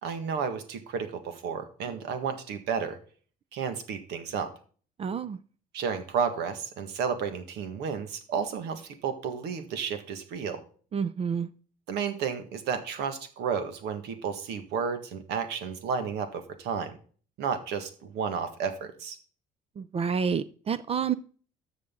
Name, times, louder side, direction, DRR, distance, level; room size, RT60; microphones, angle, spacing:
voice 1, 0.0-3.0 3.5-4.5 5.7-10.6 11.9-16.9 17.4-19.2, right 6 dB, 85° right, 8 dB, 1.7 m, -32 dB
voice 2, 5.0-5.4 10.9-11.5 19.8-21.1, right 6 dB, 35° right, 14 dB, 0.5 m, -29 dB
13.0 x 6.5 x 3.8 m, 0.42 s
cardioid pair, 110°, 17 cm